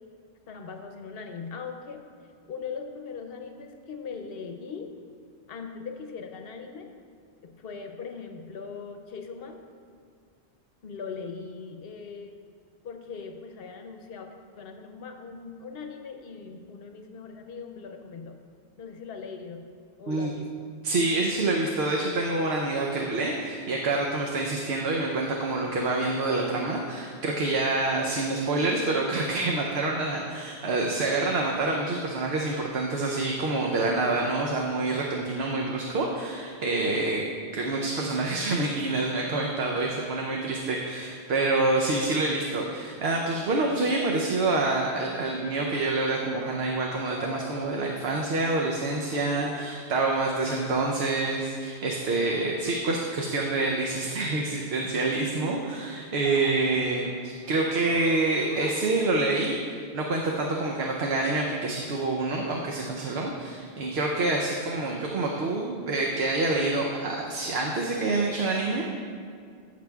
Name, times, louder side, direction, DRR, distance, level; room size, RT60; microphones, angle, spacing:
voice 1, 0.5-2.1 2.5-4.9 5.5-6.9 7.4-9.6 10.8-12.4 12.8-18.4 18.8-19.6 20.0-20.5, left 5 dB, 65° left, 5 dB, 0.9 m, -40 dB
voice 2, 20.8-37.2 37.5-68.8, right 2 dB, 70° right, 0 dB, 1.0 m, -27 dB
sound 1, 47.1-48.4 48.8-49.9 52.5-52.8 56.2-59.7 60.4-61.0, left 2 dB, 30° left, 0.6 m, -46 dB
14.5 x 6.8 x 2.3 m, 2.2 s
omnidirectional pair, 1.1 m